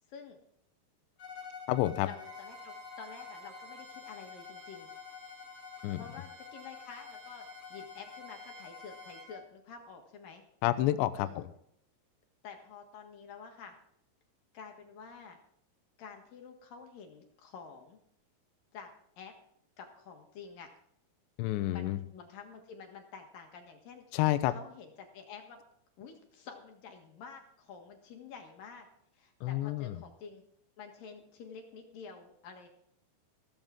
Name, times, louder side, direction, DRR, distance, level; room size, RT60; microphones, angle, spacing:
voice 1, 0.1-0.4 2.0-4.9 6.0-7.4 7.7-10.4 11.2-11.5 12.4-13.7 14.5-15.4 16.0-18.0 18.7-18.9 19.2-19.3 19.8-20.7 21.7-24.2 24.5-25.6 26.0-28.9 29.1-30.4 30.8-32.7, left 6 dB, 60° left, 4 dB, 2.9 m, -49 dB
Bowed string instrument, 1.2-9.5, left 6 dB, 45° left, 2.5 m, -49 dB
voice 2, 1.7-2.1 5.8-6.0 10.6-11.4 21.4-22.0 24.1-24.5 29.4-29.9, left 15 dB, 85° left, 11 dB, 2.9 m, -29 dB
Bowed string instrument 2, 2.2-9.3, right 4 dB, 60° right, 4.8 m, -55 dB
15.5 x 14.5 x 3.7 m, 0.71 s
omnidirectional pair, 5.1 m